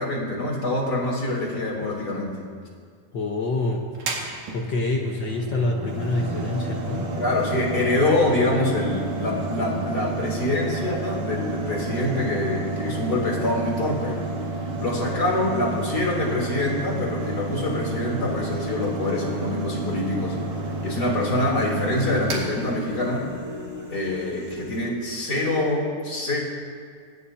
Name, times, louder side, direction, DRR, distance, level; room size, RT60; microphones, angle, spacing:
voice 1, 0.0-2.4 7.2-14.2 14.8-20.4 20.8-23.3 23.9-26.4, left 2 dB, 30° left, -3 dB, 3.7 m, -25 dB
voice 2, 3.1-3.8 4.5-7.1, left 2 dB, 65° left, 0 dB, 1.1 m, -26 dB
Mechanical fan, 3.9-23.3, right 3 dB, 70° right, 3.5 m, -31 dB
sound 1, 5.9-24.9, left 1 dB, 10° right, 1.5 m, -39 dB
29.5 x 16.5 x 2.9 m, 2.1 s
omnidirectional pair, 3.9 m